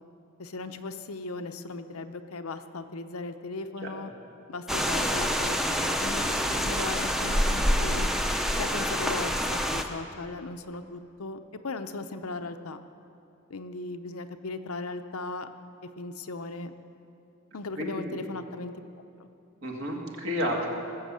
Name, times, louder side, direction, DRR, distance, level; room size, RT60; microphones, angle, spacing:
voice 1, 0.4-4.1 4.5-8.1 8.6-12.8 13.5-15.5 16.0-16.7 17.5-18.7 19.2-19.3, left 3 dB, 85° left, 8 dB, 0.7 m, -37 dB
sound 1, 4.7-9.8, equal, ahead, 0.6 m, -27 dB
voice 2, 17.8-18.3 19.6-20.7, equal, 65° right, -1 dB, 2.1 m, -31 dB
19.0 x 7.4 x 7.6 m, 2.6 s
head